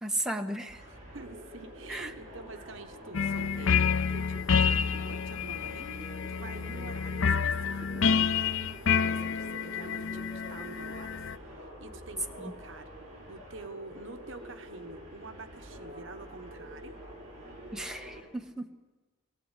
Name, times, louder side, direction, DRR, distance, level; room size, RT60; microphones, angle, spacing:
voice 1, 0.0-0.8 1.9-2.1 12.4-12.5 17.7-18.7, right 1 dB, 5° right, 3 dB, 1.2 m, -35 dB
sound 1, 0.7-18.2, equal, 40° right, 6.9 m, -46 dB
voice 2, 1.1-8.5 8.9-11.1 11.4-12.9 13.3-17.0, right 3 dB, 65° right, 8 dB, 1.2 m, -47 dB
sound 2, 3.1-11.4, left 6 dB, 80° left, 0.6 m, -28 dB
23.5 x 17.0 x 8.2 m, 1.2 s
head